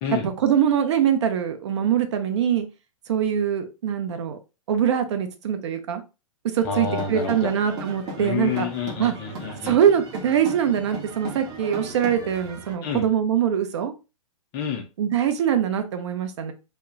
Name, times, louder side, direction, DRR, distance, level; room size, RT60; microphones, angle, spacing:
voice 1, 0.2-2.7 3.1-4.4 4.7-6.0 6.5-8.7 9.0-9.1 9.6-13.9 15.0-16.5, right 9 dB, 55° right, 8 dB, 0.5 m, -23 dB
voice 2, 6.6-7.5 8.2-9.8 12.8-13.1 14.5-14.9, left 6 dB, 25° left, 2 dB, 0.4 m, -28 dB
sound 1, 6.6-12.7, right 2 dB, 20° right, 0.8 m, -38 dB
2.1 x 2.0 x 3.8 m, 0.29 s
figure-of-eight pair, 115°, 18 cm